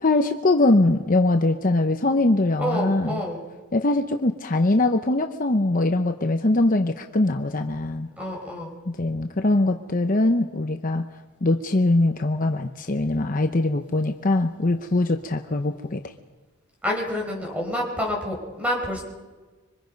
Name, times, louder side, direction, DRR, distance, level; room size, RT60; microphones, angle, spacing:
voice 1, 0.0-3.2 3.7-8.1 8.9-11.0 11.4-16.0, left 2 dB, 40° left, 5 dB, 0.8 m, -22 dB
voice 2, 2.6-3.4 8.2-8.7 16.8-19.0, equal, 5° right, 0 dB, 4.9 m, -28 dB
26.0 x 24.5 x 5.3 m, 1.3 s
head